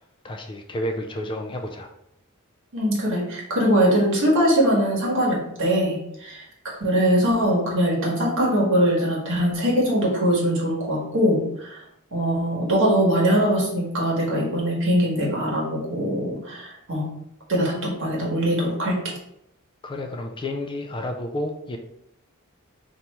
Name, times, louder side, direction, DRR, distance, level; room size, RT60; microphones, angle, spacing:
voice 1, 0.2-1.9 19.8-21.8, left 1 dB, 20° left, 4 dB, 0.3 m, -30 dB
voice 2, 2.7-11.8 12.1-17.1 17.5-19.1, equal, 60° right, -3 dB, 1.4 m, -22 dB
4.1 x 2.9 x 3.4 m, 0.77 s
head